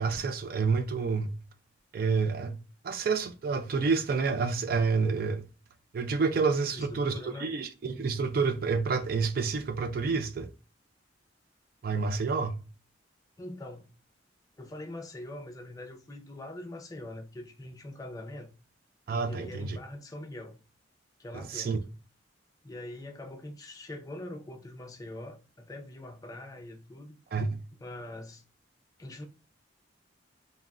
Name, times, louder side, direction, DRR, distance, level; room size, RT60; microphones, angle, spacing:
voice 1, 0.0-1.3 1.9-2.6 2.8-5.5 5.9-10.5 11.8-12.6 19.1-19.8 21.3-21.8 27.3-27.6, right 4 dB, 50° right, 0.4 m, -29 dB
voice 2, 6.6-7.5 13.4-13.9 14.6-18.5 19.2-20.6 21.2-21.8 22.6-27.2 27.8-28.4 29.0-29.3, left 1 dB, 20° left, 0.5 m, -43 dB
3.5 x 2.1 x 2.2 m
head